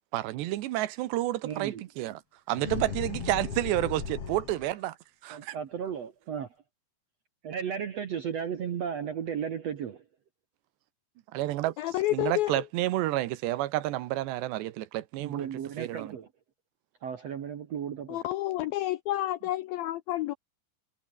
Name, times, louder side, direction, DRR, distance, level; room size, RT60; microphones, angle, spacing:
voice 1, 0.1-2.2 2.5-4.9 5.2-5.5 11.3-11.7 12.1-15.5 15.8-16.2, right 15 dB, 80° right, 3.2 m, -30 dB
voice 2, 1.4-1.8 5.3-6.5 7.4-10.0 15.2-16.3 17.0-18.2, right 8 dB, 65° right, 1.6 m, -35 dB
sound 1, 2.6-4.8, left 6 dB, 35° left, 3.4 m, -36 dB
voice 3, 11.8-12.6 18.1-20.3, left 15 dB, 85° left, 2.1 m, -30 dB
omnidirectional pair, 5.0 m